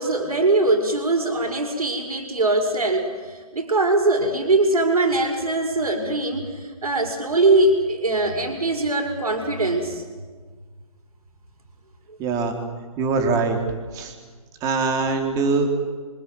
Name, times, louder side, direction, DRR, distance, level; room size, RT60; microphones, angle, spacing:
voice 1, 0.0-10.0, right 2 dB, 75° right, 3 dB, 6.2 m, -21 dB
voice 2, 12.2-12.5 13.0-13.6 13.9-14.1 14.6-15.7, right 4 dB, 20° right, 3 dB, 3.8 m, -22 dB
28.5 x 25.5 x 7.9 m, 1.5 s
figure-of-eight pair, 140°, 19 cm